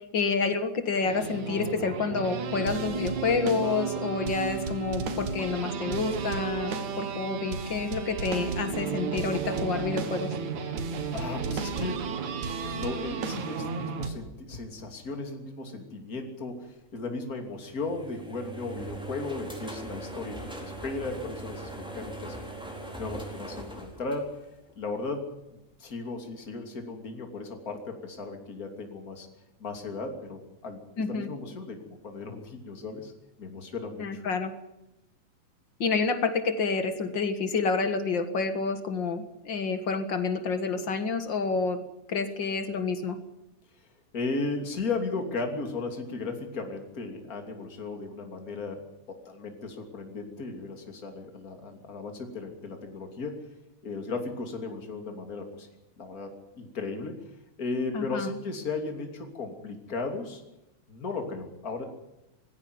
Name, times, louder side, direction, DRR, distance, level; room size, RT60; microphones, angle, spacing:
voice 1, 0.1-10.3 31.0-31.3 34.0-34.5 35.8-41.8 42.1-43.2 57.9-58.3, left 4 dB, 45° left, 9 dB, 1.9 m, -29 dB
sound 1, 1.0-14.1, right 5 dB, 80° right, 3.2 m, -33 dB
voice 2, 11.1-12.0 12.6-22.3 23.0-24.3 24.8-29.3 29.6-33.1 33.4-34.2 44.1-48.8 49.1-53.4 53.8-55.7 56.0-57.2 57.6-60.4 60.9-61.9, left 3 dB, 30° left, 4 dB, 3.2 m, -36 dB
sound 2, 17.5-24.8, right 2 dB, ahead, 4.2 m, -40 dB
20.5 x 16.0 x 9.5 m, 0.93 s
omnidirectional pair, 3.3 m